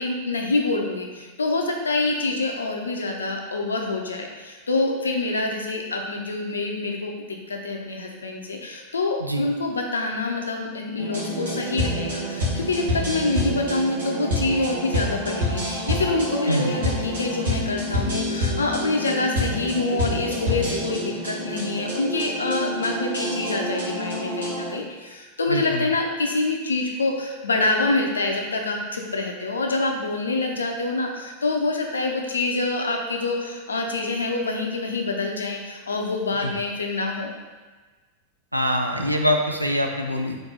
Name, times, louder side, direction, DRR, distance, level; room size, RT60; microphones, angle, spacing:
voice 1, 0.0-37.3, left 3 dB, 75° left, 1 dB, 0.5 m, -26 dB
sound 1, 11.0-24.7, left 1 dB, 65° right, 1.3 m, -27 dB
voice 2, 25.5-25.9 36.4-36.5 38.5-40.4, equal, 90° right, 3 dB, 0.4 m, -24 dB
4.0 x 2.6 x 3.7 m, 1.3 s
figure-of-eight pair, 90°, 0 cm